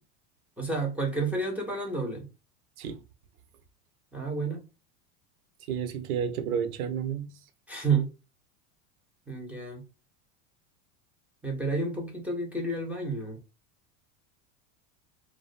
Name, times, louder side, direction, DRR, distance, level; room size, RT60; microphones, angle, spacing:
voice 1, 0.6-2.3 4.1-4.6 7.7-8.1 9.3-9.8 11.4-13.4, right 3 dB, 5° right, 0.4 m, -30 dB
voice 2, 5.7-7.3, right 7 dB, 85° right, 0.6 m, -31 dB
2.4 x 2.1 x 2.5 m
supercardioid pair, 120°, 41 cm